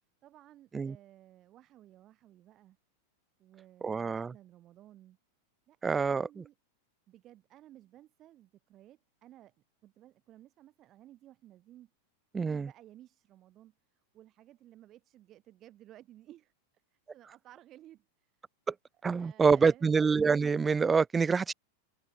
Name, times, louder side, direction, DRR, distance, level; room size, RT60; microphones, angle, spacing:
voice 1, 0.2-2.8 3.4-5.2 5.7-6.6 7.1-9.6 9.8-11.9 12.3-18.3 19.1-20.0, right 13 dB, 35° right, 5.4 m, -57 dB
voice 2, 3.8-4.3 5.8-6.3 12.3-12.7 19.0-21.5, right 5 dB, 15° right, 0.4 m, -26 dB
figure-of-eight pair, 90°, 0 cm